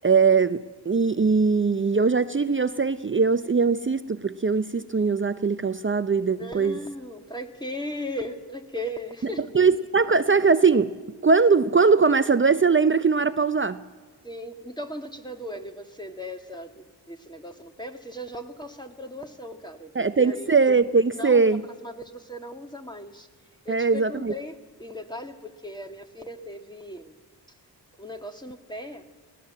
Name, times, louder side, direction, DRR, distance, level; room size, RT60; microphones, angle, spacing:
voice 1, 0.0-6.8 9.5-10.9 11.2-13.8 19.9-21.6 23.7-24.3, right 4 dB, 30° right, 12 dB, 0.7 m, -21 dB
voice 2, 6.4-9.6 14.2-20.6 21.1-21.6 21.8-23.3 23.7-27.1 28.0-29.1, left 1 dB, 10° left, 5 dB, 2.0 m, -37 dB
19.5 x 17.5 x 7.6 m, 1.4 s
supercardioid pair, 40°, 44 cm